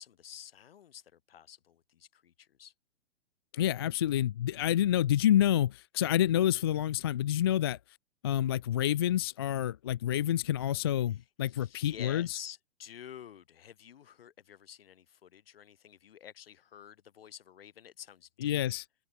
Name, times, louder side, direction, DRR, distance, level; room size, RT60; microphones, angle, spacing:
voice 1, 0.0-2.7 11.1-18.6, left 9 dB, 55° left, 2.0 m, -50 dB
voice 2, 3.5-7.8 8.2-12.4 18.4-18.8, left 11 dB, 25° left, 0.4 m, -28 dB
open air
figure-of-eight pair, 120°, 35 cm